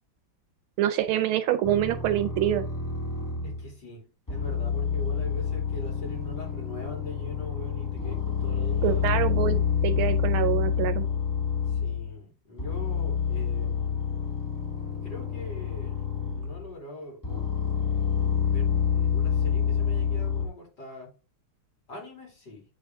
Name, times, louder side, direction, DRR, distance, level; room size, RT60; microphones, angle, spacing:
voice 1, 0.8-2.6 8.8-11.1, right 12 dB, 75° right, 1.4 m, -26 dB
sound 1, 1.6-3.7 4.3-12.1 12.6-16.7 17.2-20.5, left 7 dB, 10° left, 0.9 m, -28 dB
voice 2, 3.4-4.0 4.3-9.2 11.7-14.0 15.0-16.0 16.3-17.2 18.5-21.1 21.9-22.6, left 1 dB, 50° left, 3.4 m, -42 dB
8.2 x 3.6 x 3.4 m
omnidirectional pair, 2.4 m